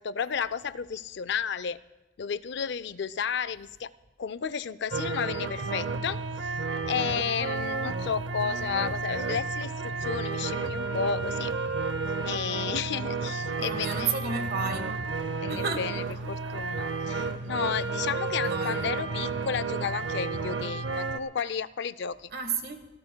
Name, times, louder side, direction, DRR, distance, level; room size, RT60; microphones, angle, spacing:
voice 1, 0.0-1.8 2.2-3.9 4.2-6.5 6.9-11.5 12.2-14.2 15.4-22.3, left 7 dB, 65° left, 0.4 m, -32 dB
sound 1, 4.9-21.2, right 4 dB, 75° right, 0.7 m, -32 dB
voice 2, 13.6-15.0 15.5-15.9 18.4-18.8 22.3-22.9, right 5 dB, 55° right, 1.4 m, -32 dB
26.0 x 18.0 x 2.3 m
head